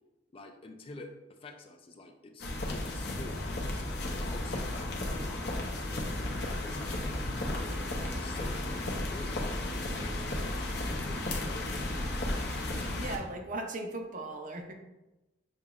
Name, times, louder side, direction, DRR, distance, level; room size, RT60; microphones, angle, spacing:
voice 1, 0.3-6.1 6.4-7.8 8.1-12.1, left 2 dB, 30° left, 5 dB, 0.4 m, -48 dB
sound 1, 2.4-13.2, left 1 dB, 65° left, 0.7 m, -34 dB
voice 2, 12.5-14.7, right 2 dB, 45° right, 3 dB, 0.6 m, -39 dB
6.6 x 2.9 x 2.4 m, 1.0 s
head